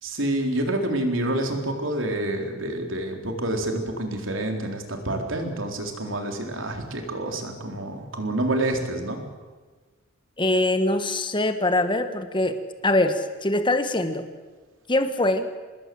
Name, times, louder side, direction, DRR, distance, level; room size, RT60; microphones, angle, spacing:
voice 1, 0.0-9.2, right 1 dB, 70° right, 3 dB, 3.9 m, -28 dB
voice 2, 10.4-14.3 14.9-15.5, left 1 dB, 25° left, 9 dB, 1.7 m, -23 dB
25.5 x 20.5 x 7.9 m, 1.4 s
head